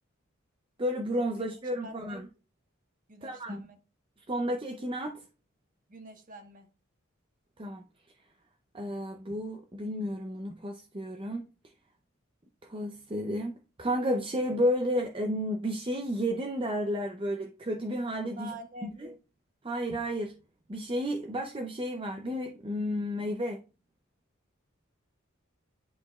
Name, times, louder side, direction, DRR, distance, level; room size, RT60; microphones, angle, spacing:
voice 1, 0.8-2.2 3.2-3.6 4.3-5.2 7.6-7.8 8.7-11.4 12.7-18.5 18.8-19.1 19.6-20.3 20.7-23.6, equal, 25° right, 0.7 m, -32 dB
voice 2, 1.8-2.2 3.1-3.8 5.9-6.7 18.4-18.9, right 2 dB, 40° right, 1.4 m, -46 dB
10.5 x 5.2 x 2.3 m
head